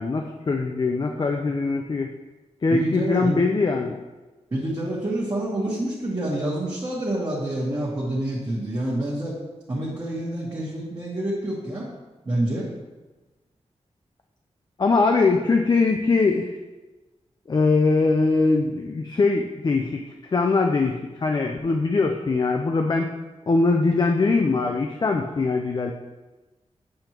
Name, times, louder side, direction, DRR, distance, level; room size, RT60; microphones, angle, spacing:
voice 1, 0.0-2.1 2.6-4.0 14.8-16.5 17.5-20.0 20.3-23.1 23.5-25.9, left 3 dB, 40° left, 3 dB, 0.4 m, -22 dB
voice 2, 2.7-3.4 4.5-9.3 9.7-11.9 12.2-12.7, right 1 dB, 35° right, -7 dB, 1.2 m, -27 dB
7.7 x 5.2 x 3.0 m, 1.2 s
wide cardioid pair, 115°, 12 cm